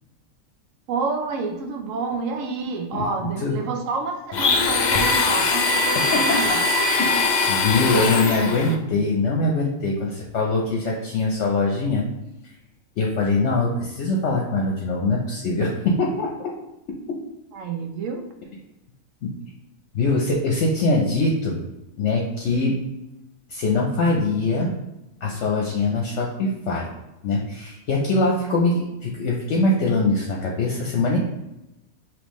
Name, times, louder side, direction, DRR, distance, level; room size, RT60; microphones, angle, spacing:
voice 1, 0.9-6.9 17.5-18.2, right 4 dB, 75° right, 4 dB, 1.0 m, -29 dB
voice 2, 2.9-3.6 5.9-6.6 7.0-12.0 13.0-16.5 19.2-19.3 19.9-21.6 22.0-22.8 23.5-24.7 25.2-26.9 27.2-31.2, left 3 dB, 65° left, -2 dB, 0.9 m, -23 dB
Domestic sounds home sounds, 4.3-8.8, left 3 dB, 85° left, 0.4 m, -21 dB
5.3 x 3.1 x 3.1 m, 0.94 s
omnidirectional pair, 1.4 m